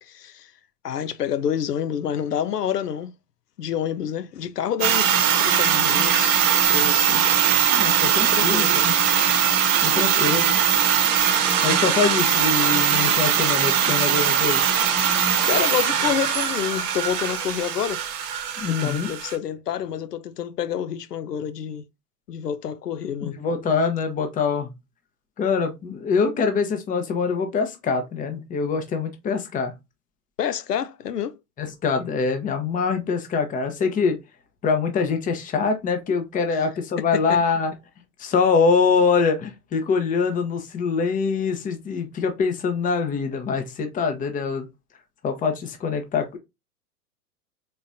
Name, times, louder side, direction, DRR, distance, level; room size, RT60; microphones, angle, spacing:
voice 1, 0.0-0.5 0.8-3.1 3.6-6.4 6.7-7.2 8.2-8.8 9.9-10.4 15.5-18.0 18.7-21.8 22.3-23.4 30.4-31.4 36.5-36.6 37.0-37.4, left 9 dB, 90° left, 0.5 m, -28 dB
sound 1, 4.8-19.4, right 8 dB, 35° right, 0.9 m, -20 dB
voice 2, 7.7-8.9 9.8-10.5 11.6-14.6 18.6-19.1 23.2-24.7 25.4-29.7 31.6-34.2 34.6-37.7 38.2-44.7 45.2-46.4, left 5 dB, 15° left, 0.8 m, -24 dB
4.0 x 3.7 x 2.6 m
figure-of-eight pair, 100°, 46 cm